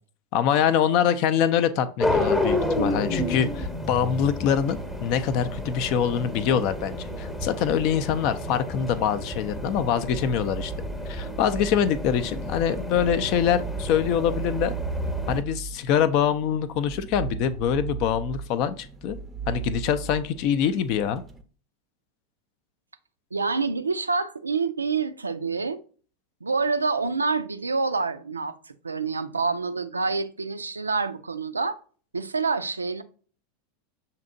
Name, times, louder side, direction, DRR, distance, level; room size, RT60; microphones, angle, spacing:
voice 1, 0.3-10.7 11.1-14.7 15.3-19.2 19.5-21.2, left 8 dB, 45° left, 0.4 m, -24 dB
sound 1, 2.0-15.4, left 1 dB, 10° left, 0.9 m, -30 dB
sound 2, 9.3-21.4, right 7 dB, 15° right, 0.5 m, -37 dB
voice 2, 23.3-25.8 26.4-31.8 32.1-33.0, right 4 dB, 80° right, 0.3 m, -27 dB
6.6 x 2.7 x 2.5 m
figure-of-eight pair, 85°, 0 cm